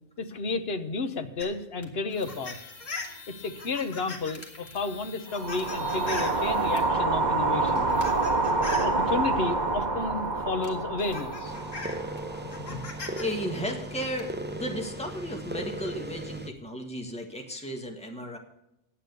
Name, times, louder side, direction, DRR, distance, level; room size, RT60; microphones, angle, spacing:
voice 1, 0.2-2.6 3.3-8.0 8.8-11.5 12.7-12.8, left 3 dB, 55° left, 9 dB, 1.1 m, -32 dB
sound 1, 1.4-6.9 7.6-9.0 10.2-10.3 10.6-13.2 13.5-14.2, left 3 dB, 80° left, 2.3 m, -41 dB
sound 2, 5.3-13.6, right 3 dB, 35° right, 1.5 m, -28 dB
sound 3, 11.4-16.5, right 1 dB, 15° right, 0.5 m, -37 dB
voice 2, 13.2-18.4, equal, 5° left, 2 dB, 1.6 m, -34 dB
9.9 x 8.6 x 6.6 m, 0.84 s
omnidirectional pair, 1.3 m